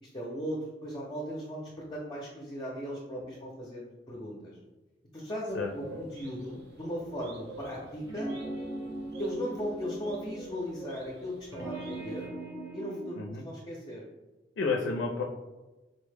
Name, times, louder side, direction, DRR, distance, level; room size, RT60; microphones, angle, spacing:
voice 1, 0.0-4.6 5.1-8.3 9.2-12.3 12.7-13.2 13.4-14.0, equal, 25° left, -3 dB, 0.5 m, -37 dB
sound 1, 5.5-12.3, right 1 dB, 65° right, 0.6 m, -48 dB
sound 2, 8.0-10.5 11.5-13.3, right 1 dB, 20° right, 0.7 m, -39 dB
voice 2, 14.6-15.2, left 4 dB, 85° left, 1 dB, 0.4 m, -30 dB
4.0 x 2.1 x 3.2 m, 1.1 s
head